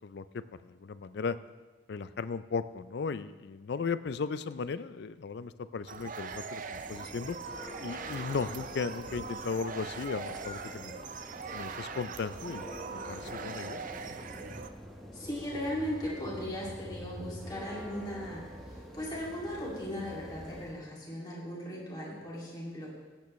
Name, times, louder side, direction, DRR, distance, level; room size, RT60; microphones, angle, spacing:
voice 1, 0.0-1.4 1.9-7.4 7.8-11.0 11.5-12.7 13.1-13.8, left 5 dB, 55° left, 14 dB, 0.4 m, -36 dB
sound 1, 5.9-14.7, right 5 dB, 45° right, 0.4 m, -41 dB
Church bell, 6.6-20.9, equal, ahead, 0.9 m, -46 dB
voice 2, 15.1-22.9, equal, 20° left, -5 dB, 2.4 m, -38 dB
17.0 x 8.3 x 3.1 m, 1.3 s
head